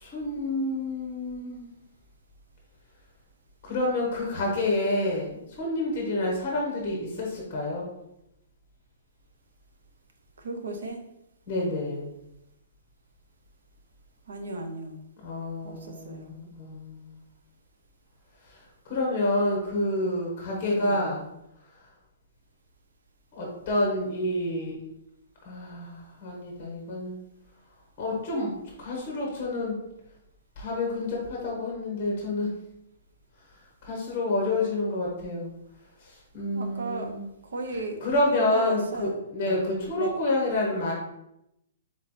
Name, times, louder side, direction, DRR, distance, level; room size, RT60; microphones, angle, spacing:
voice 1, 0.0-1.7 3.6-7.9 11.5-12.1 15.2-17.2 18.8-21.3 23.3-24.7 25.4-27.2 28.0-29.8 30.6-32.5 33.8-35.5 36.0-37.2 38.0-40.9, left 2 dB, 15° left, -3 dB, 1.1 m, -28 dB
voice 2, 10.4-11.0 14.3-15.0 15.6-16.3 20.7-21.1 36.5-37.1 37.4-38.0 38.3-39.2 39.4-39.6 40.0-40.1, right 2 dB, 75° right, 4 dB, 0.9 m, -35 dB
3.9 x 3.2 x 4.1 m, 0.83 s
hypercardioid pair, 175°, 0 cm